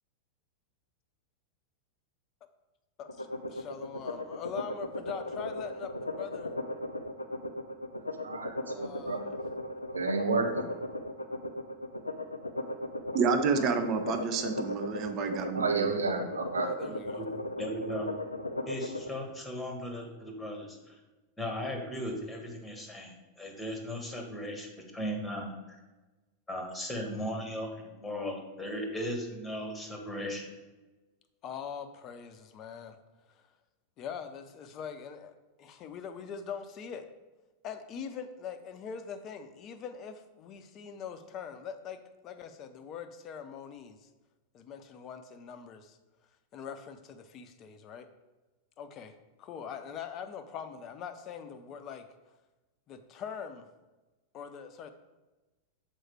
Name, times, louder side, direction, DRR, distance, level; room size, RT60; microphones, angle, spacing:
voice 1, 3.0-6.5 8.7-9.4 13.5-13.8 16.6-17.3 31.4-33.0 33.3-33.4 34.0-37.1 37.6-44.0 44.5-46.0 46.5-48.1 48.8-52.1 52.9-53.7 54.3-54.9, left 7 dB, 35° left, 9 dB, 0.6 m, -43 dB
sound 1, 3.1-19.1, left 1 dB, 80° left, 0.4 m, -37 dB
voice 2, 8.2-9.2 9.9-10.6 15.5-16.7, right 4 dB, 75° right, 4 dB, 0.8 m, -30 dB
voice 3, 13.1-15.9, right 5 dB, 35° right, 7 dB, 0.6 m, -29 dB
voice 4, 16.8-17.3 17.6-18.1 18.7-21.0 21.4-25.8 26.5-30.5, equal, 10° left, 3 dB, 1.3 m, -37 dB
6.4 x 4.4 x 4.6 m, 1.2 s
figure-of-eight pair, 90°, 0 cm